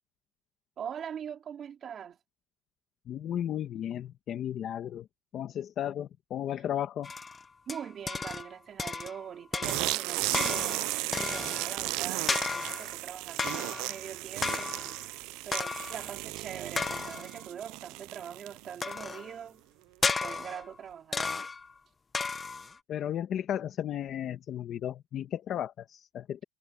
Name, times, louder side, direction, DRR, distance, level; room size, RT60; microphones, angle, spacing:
voice 1, 0.8-2.2 7.7-14.7 15.4-19.6 20.2-21.5, right 8 dB, 30° right, 4.0 m, -42 dB
voice 2, 3.1-5.1 5.3-7.1 22.9-26.4, left 10 dB, 40° left, 1.5 m, -34 dB
sound 1, 7.0-8.5 8.8-9.3 9.5-11.8 12.3-12.9 13.4-14.0 14.4-15.0 15.5-16.1 16.8-17.4 18.8-19.3 20.0-20.7 21.1-21.7 22.1-22.8, left 4 dB, 15° left, 1.1 m, -34 dB
sound 2, 9.6-19.1, right 21 dB, 70° right, 0.4 m, -35 dB
cardioid pair, 160°, 0 cm